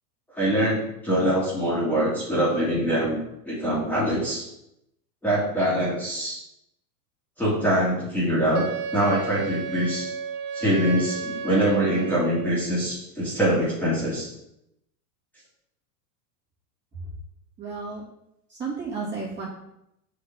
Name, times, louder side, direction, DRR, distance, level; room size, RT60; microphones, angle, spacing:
voice 1, 0.3-4.4 5.2-6.4 7.4-10.1 10.5-14.3, right 1 dB, 5° left, -8 dB, 2.2 m, -24 dB
Wind instrument woodwind instrument, 8.5-12.7, right 4 dB, 50° right, 0.8 m, -33 dB
voice 2, 17.6-18.0 18.5-19.4, right 4 dB, 25° right, -7 dB, 2.4 m, -32 dB
6.7 x 4.9 x 3.7 m, 0.82 s
supercardioid pair, 130°, 46 cm